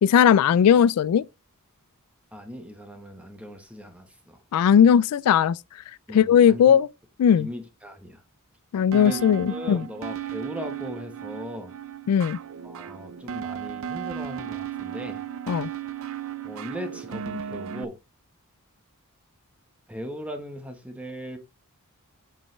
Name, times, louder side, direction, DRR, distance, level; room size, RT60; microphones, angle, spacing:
voice 1, 0.0-1.2 4.5-5.6 6.1-6.9 7.2-7.5 8.7-9.8 12.1-12.4 15.5-15.7, left 8 dB, 85° left, 0.3 m, -18 dB
voice 2, 2.3-4.4 6.1-6.8 7.3-8.2 8.9-9.2 9.5-11.7 12.6-15.2 16.4-18.0 19.9-21.4, equal, 5° right, 1.1 m, -38 dB
sound 1, 8.9-17.8, right 8 dB, 65° right, 0.5 m, -35 dB
8.4 x 5.5 x 3.1 m
head